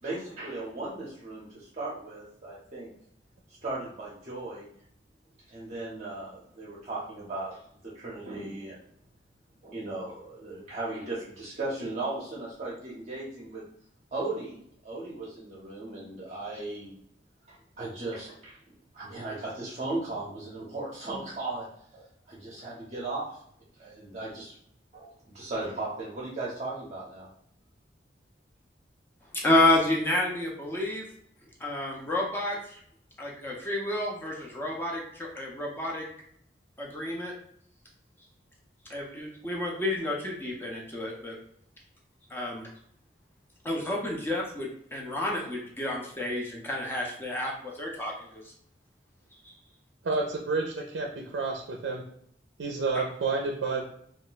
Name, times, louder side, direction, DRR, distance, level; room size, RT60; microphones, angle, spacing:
voice 1, 0.0-2.9 3.6-4.7 5.5-8.8 9.6-13.6 14.1-14.6 14.8-17.0 17.5-18.6 18.9-21.7 21.9-23.4 23.8-24.5 24.9-27.3, right 2 dB, 35° right, -6 dB, 0.6 m, -37 dB
voice 2, 29.3-31.1 31.6-32.8 33.2-36.0 36.8-37.3 38.9-41.4 42.3-42.7 43.6-48.4 49.4-49.5, left 1 dB, 10° left, -2 dB, 0.5 m, -30 dB
voice 3, 50.0-52.0 52.6-53.8, right 3 dB, 85° right, 1 dB, 0.4 m, -30 dB
2.3 x 2.1 x 3.8 m, 0.68 s
head